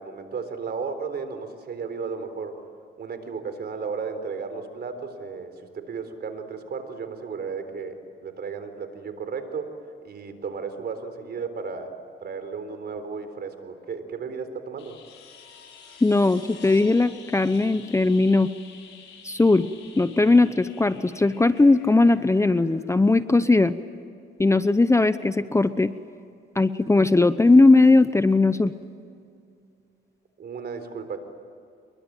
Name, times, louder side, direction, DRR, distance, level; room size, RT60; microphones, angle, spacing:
voice 1, 0.0-2.6 3.0-9.7 10.0-12.0 12.2-15.0 30.4-31.2, right 5 dB, 55° right, 9 dB, 4.0 m, -34 dB
sound 1, 14.8-23.5 25.8-25.9, left 6 dB, 75° left, 6.0 m, -49 dB
voice 2, 16.0-18.5 19.2-19.7 20.0-23.8 24.4-25.9 26.6-28.7, left 3 dB, 15° left, 13 dB, 0.8 m, -19 dB
27.0 x 22.5 x 9.0 m, 2.4 s
cardioid pair, 90°, 20 cm